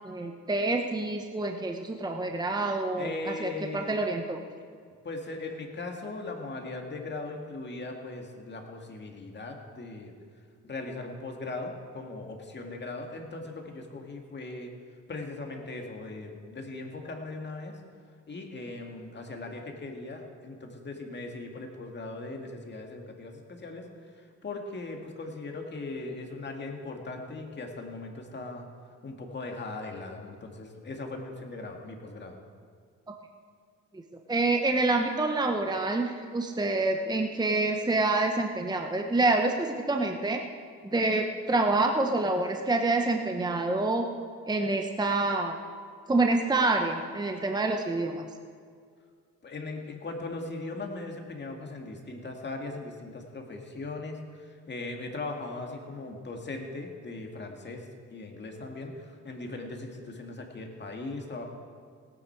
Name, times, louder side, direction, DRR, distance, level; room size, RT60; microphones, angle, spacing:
voice 1, 0.0-4.4 34.3-40.4 40.9-44.1 44.5-45.6 46.1-48.3, right 2 dB, 15° right, 4 dB, 1.0 m, -27 dB
voice 2, 3.0-4.0 5.0-10.1 10.6-14.7 15.1-17.8 18.3-23.9 24.1-28.7 29.0-32.3 49.4-61.4, left 3 dB, 35° left, 2 dB, 2.2 m, -39 dB
18.0 x 9.9 x 4.7 m, 2.1 s
cardioid pair, 90°, 30 cm